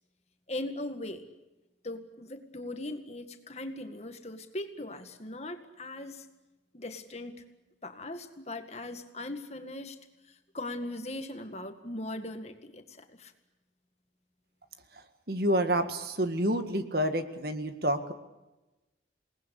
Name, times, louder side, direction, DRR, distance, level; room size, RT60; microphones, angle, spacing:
voice 1, 0.5-1.3 1.8-6.3 6.7-7.4 7.8-10.0 10.3-13.3, left 1 dB, 35° left, 7 dB, 2.0 m, -39 dB
voice 2, 15.3-18.1, right 1 dB, 55° right, 8 dB, 1.9 m, -28 dB
28.0 x 19.5 x 8.4 m, 1.0 s
head